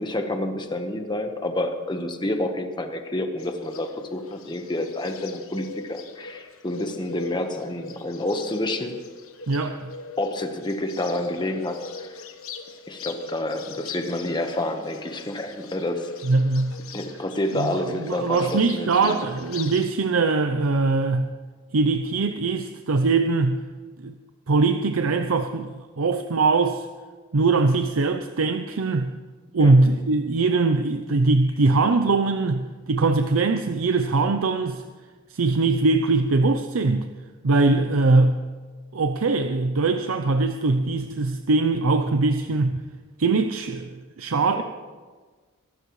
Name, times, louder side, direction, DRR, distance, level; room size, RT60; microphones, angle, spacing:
voice 1, 0.0-9.0 10.2-12.1 12.9-16.1 16.9-19.2 29.6-29.7 44.5-44.6, left 1 dB, 20° left, 5 dB, 1.2 m, -29 dB
Bird, 3.4-19.9, left 4 dB, 90° left, 1.2 m, -41 dB
voice 2, 9.5-9.9 16.2-16.8 17.6-21.3 21.7-23.6 24.0-24.1 24.5-26.9 27.3-29.1 29.5-34.8 35.3-37.1 37.4-38.4 38.9-42.8 43.2-44.6, right 3 dB, 80° right, 7 dB, 0.6 m, -22 dB
23.5 x 12.0 x 3.2 m, 1.4 s
head